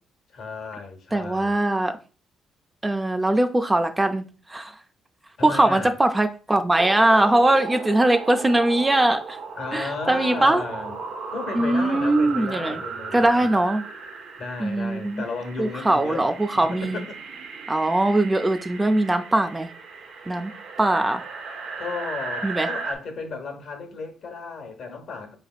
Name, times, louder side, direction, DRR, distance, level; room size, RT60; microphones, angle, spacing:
voice 1, 0.3-1.6 5.4-5.9 9.6-11.0 11.3-13.5 14.4-17.1 19.9-20.1 21.8-25.3, left 4 dB, 65° left, 1.0 m, -34 dB
voice 2, 1.1-1.9 2.8-4.2 4.5-4.7 5.4-9.4 9.7-10.6 11.5-12.8 13.1-13.8 14.6-15.2 15.6-17.1 17.7-19.7 20.3-20.5 20.8-21.2 22.4-22.7, right 1 dB, 15° right, 0.4 m, -21 dB
testing floiseflower, 6.8-23.0, right 4 dB, 70° right, 0.8 m, -36 dB
4.9 x 3.3 x 2.3 m
cardioid pair, 90°, 0 cm